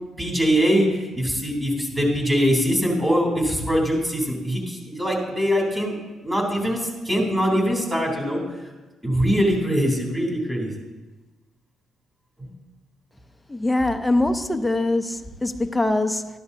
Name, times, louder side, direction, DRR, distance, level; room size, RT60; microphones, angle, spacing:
voice 1, 0.2-5.9 6.2-8.4 9.0-10.7 12.4-12.5, equal, 10° right, -1 dB, 3.3 m, -22 dB
voice 2, 13.5-16.3, left 2 dB, 10° left, 7 dB, 0.6 m, -23 dB
13.5 x 11.0 x 2.8 m, 1.2 s
cardioid pair, 90°, 0 cm